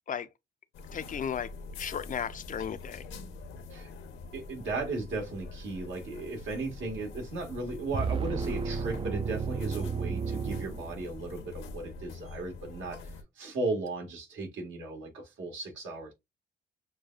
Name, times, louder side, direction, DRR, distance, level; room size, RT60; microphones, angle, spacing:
sound 1, 0.7-13.2, left 3 dB, 90° left, 1.0 m, -45 dB
voice 1, 0.9-1.5 1.8-3.1, left 8 dB, 40° left, 0.4 m, -35 dB
voice 2, 4.3-13.1 13.3-16.1, right 3 dB, 75° right, 1.6 m, -36 dB
sound 2, 7.9-11.4, right 5 dB, 25° right, 0.4 m, -33 dB
6.4 x 2.3 x 2.3 m
cardioid pair, 90°, 20 cm